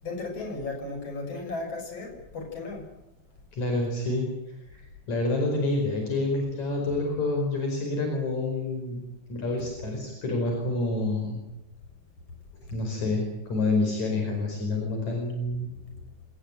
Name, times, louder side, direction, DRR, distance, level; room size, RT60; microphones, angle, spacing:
voice 1, 0.0-2.9 15.8-15.9, left 3 dB, 50° left, 2 dB, 7.8 m, -35 dB
voice 2, 3.5-4.3 4.7-9.0 9.3-11.4 12.7-15.7, left 2 dB, 70° left, 2 dB, 6.4 m, -28 dB
25.5 x 20.0 x 9.1 m, 0.89 s
omnidirectional pair, 3.5 m